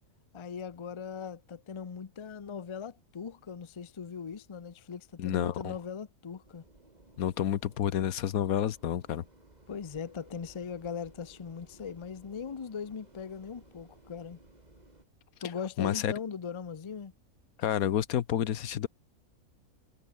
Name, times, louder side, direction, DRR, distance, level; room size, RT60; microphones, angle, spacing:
voice 1, 0.3-6.6 9.7-14.4 15.4-17.1, left 6 dB, 35° left, 0.5 m, -40 dB
voice 2, 5.2-5.7 7.2-9.2 15.8-16.1 17.6-18.9, left 10 dB, 90° left, 1.4 m, -29 dB
sound 1, 6.4-15.1, right 2 dB, 30° right, 3.6 m, -59 dB
omnidirectional pair, 1.5 m